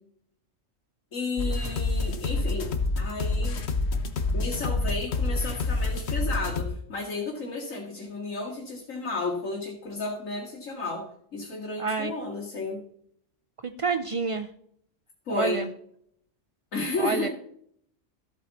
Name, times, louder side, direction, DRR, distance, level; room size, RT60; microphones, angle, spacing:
voice 1, 1.1-3.6 4.3-11.0 11.3-12.8 15.3-15.6 16.7-17.3, left 3 dB, 85° left, -5 dB, 2.6 m, -32 dB
sound 1, 1.4-6.7, left 3 dB, 55° left, 1.3 m, -27 dB
voice 2, 11.8-12.1 13.6-14.5 15.3-15.7 17.0-17.3, right 4 dB, 60° right, 10 dB, 0.3 m, -28 dB
14.0 x 8.5 x 4.1 m, 0.68 s
omnidirectional pair, 1.3 m